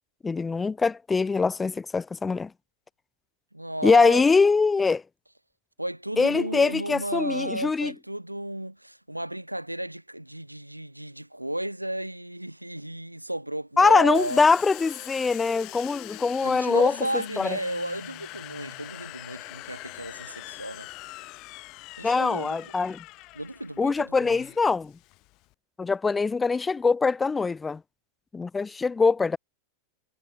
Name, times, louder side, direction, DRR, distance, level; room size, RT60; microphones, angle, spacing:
voice 1, 0.2-2.5 3.8-5.0 6.2-7.9 13.8-17.6 22.0-23.0 23.8-24.9 25.8-27.8 28.3-29.4, left 4 dB, 15° left, 0.7 m, -23 dB
voice 2, 3.5-4.2 5.8-14.4 16.4-20.9 22.0-22.7 23.3-24.4, right 1 dB, 85° right, 1.9 m, -33 dB
Domestic sounds home sounds, 14.1-25.5, left 22 dB, 40° left, 4.3 m, -43 dB
figure-of-eight pair, 90°, 0 cm